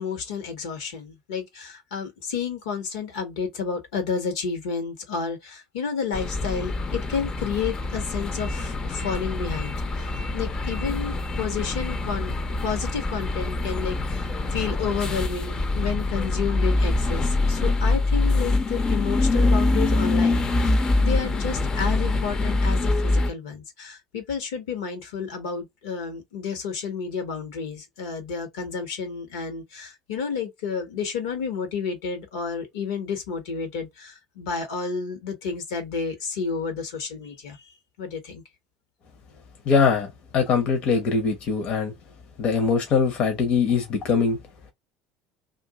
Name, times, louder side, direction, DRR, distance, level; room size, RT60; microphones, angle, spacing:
voice 1, 0.0-12.3 12.6-38.4, left 6 dB, 75° left, 1.2 m, -31 dB
sound 1, 6.1-23.3, left 2 dB, 30° left, 0.7 m, -24 dB
voice 2, 39.7-41.9 42.4-44.4, left 5 dB, 50° left, 1.0 m, -22 dB
2.6 x 2.5 x 3.6 m
hypercardioid pair, 70°, 2 cm